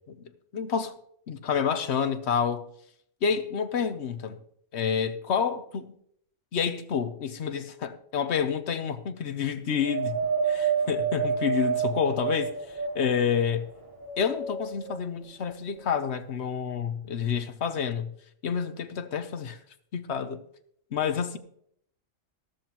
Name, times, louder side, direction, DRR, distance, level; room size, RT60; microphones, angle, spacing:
voice 1, 0.5-1.0 1.3-2.7 3.2-4.4 4.7-6.0 6.5-10.2 10.4-12.5 12.9-13.7 14.2-18.1 18.4-19.6 19.9-20.4 20.9-21.4, left 7 dB, 60° left, 1.0 m, -28 dB
Wind, 9.8-13.3 13.9-15.0 15.7-15.8, right 6 dB, 40° right, 2.8 m, -29 dB
13.5 x 13.0 x 2.9 m
omnidirectional pair, 1.3 m